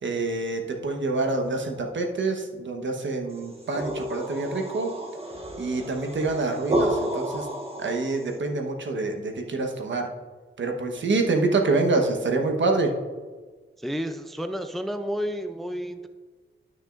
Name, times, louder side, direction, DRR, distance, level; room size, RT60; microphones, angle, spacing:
voice 1, 0.0-4.9 5.6-7.5 7.8-10.1 10.6-12.9, right 3 dB, 60° right, 3 dB, 1.2 m, -26 dB
sound 1, 3.4-8.3, right 1 dB, 30° right, 1.5 m, -31 dB
voice 2, 13.8-16.1, equal, ahead, 7 dB, 0.5 m, -31 dB
12.5 x 6.3 x 2.5 m, 1.4 s
cardioid pair, 75°, 21 cm